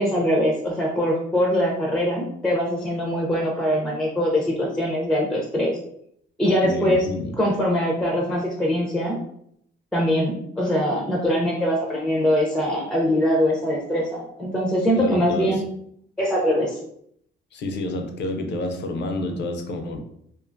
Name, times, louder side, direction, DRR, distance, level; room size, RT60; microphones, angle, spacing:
voice 1, 0.0-5.8 6.4-7.1 7.4-9.2 9.9-15.6 16.2-16.8, equal, 5° left, -1 dB, 0.5 m, -22 dB
voice 2, 6.6-7.3 15.0-15.6 17.5-20.0, left 2 dB, 60° left, 5 dB, 0.5 m, -29 dB
2.4 x 2.3 x 2.5 m, 0.70 s
cardioid pair, 90°, 20 cm